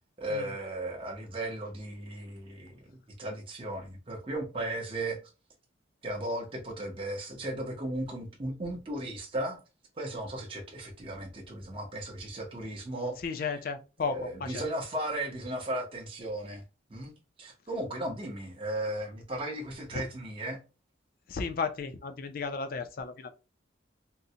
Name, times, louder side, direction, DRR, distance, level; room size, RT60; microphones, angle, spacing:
voice 1, 0.2-5.2 6.0-9.6 10.0-13.6 14.0-16.6 16.9-17.1 17.4-20.6, right 1 dB, 30° right, 0.6 m, -36 dB
voice 2, 13.2-14.6 19.9-20.0 21.3-23.3, left 5 dB, 50° left, 0.4 m, -34 dB
3.7 x 2.0 x 2.7 m
head